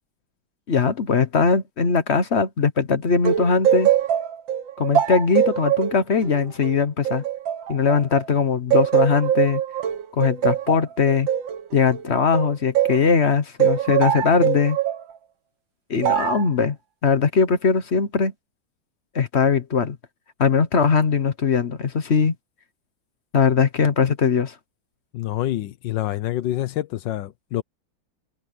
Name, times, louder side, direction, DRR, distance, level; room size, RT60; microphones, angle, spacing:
voice 1, 0.7-3.9 4.8-7.2 7.7-9.6 10.1-11.3 11.7-14.8 15.9-16.8 17.0-18.3 19.1-20.0 20.4-22.3 23.3-24.5, left 5 dB, 40° left, 1.2 m, -20 dB
sound 1, 3.2-8.3 8.7-13.1 13.6-15.0 16.0-16.5, right 10 dB, 85° right, 2.0 m, -22 dB
voice 2, 25.1-27.6, left 14 dB, 75° left, 1.4 m, -27 dB
omnidirectional pair, 2.0 m